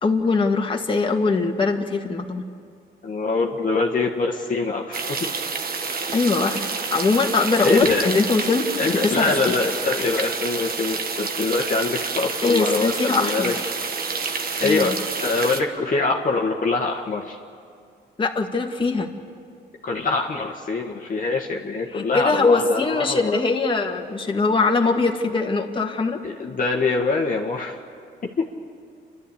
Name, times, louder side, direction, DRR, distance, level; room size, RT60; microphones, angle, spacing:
voice 1, 0.0-2.5 6.1-6.6 6.9-8.7 9.0-9.3 12.4-13.7 14.6-14.9 18.2-19.1 21.9-26.2, left 3 dB, 25° left, 2 dB, 1.9 m, -21 dB
voice 2, 3.0-5.2 7.6-8.1 8.8-13.5 14.6-14.9 15.2-17.4 19.8-23.4 26.2-27.8 28.2-28.5, left 3 dB, 40° left, 0 dB, 1.6 m, -24 dB
sound 1, 4.9-15.6, right 4 dB, 50° right, 1.6 m, -28 dB
29.0 x 12.5 x 8.5 m, 2.3 s
cardioid pair, 90°, 20 cm